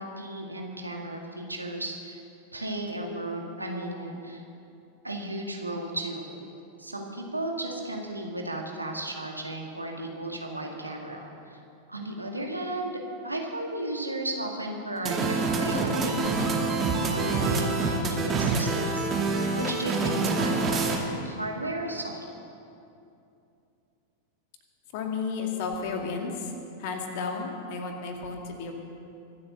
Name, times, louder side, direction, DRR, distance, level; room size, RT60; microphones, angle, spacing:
voice 1, 0.0-2.2 2.5-4.4 5.0-6.3 6.8-11.6 11.9-16.5 17.1-19.1 19.5-22.2, right 1 dB, 85° right, 1 dB, 2.2 m, -34 dB
sound 1, 15.0-21.0, right 3 dB, 25° right, 2.4 m, -26 dB
voice 2, 24.9-26.5 26.8-28.7, left 4 dB, 50° left, 3 dB, 2.3 m, -32 dB
24.0 x 8.7 x 6.8 m, 2.6 s
figure-of-eight pair, 90°, 0 cm